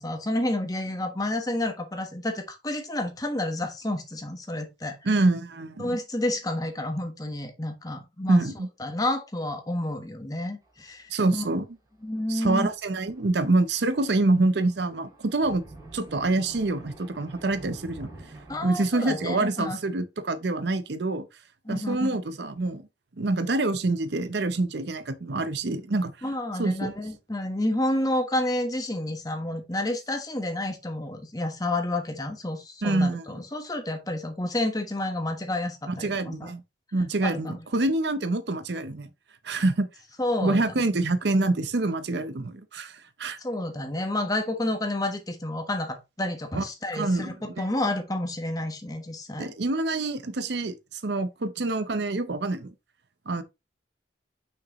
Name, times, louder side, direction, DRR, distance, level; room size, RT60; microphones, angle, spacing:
voice 1, 0.0-5.0 5.8-8.4 8.8-11.4 12.0-12.7 18.5-19.8 21.6-22.2 26.2-36.5 37.2-37.6 40.2-40.8 43.4-49.5, left 1 dB, 20° left, 1.2 m, -30 dB
voice 2, 5.0-6.0 8.3-8.7 11.1-11.7 12.3-15.6 15.9-18.1 18.6-21.3 21.7-22.8 23.2-26.1 26.6-26.9 32.8-33.3 35.9-36.6 36.9-39.1 39.4-39.9 40.4-43.4 46.5-46.6 46.9-47.6 49.4-52.7 53.3-53.4, right 2 dB, 60° right, 0.7 m, -26 dB
Thunder, 10.6-11.0 11.3-11.4 12.4-18.7, right 2 dB, 20° right, 2.0 m, -47 dB
6.4 x 5.8 x 3.0 m
head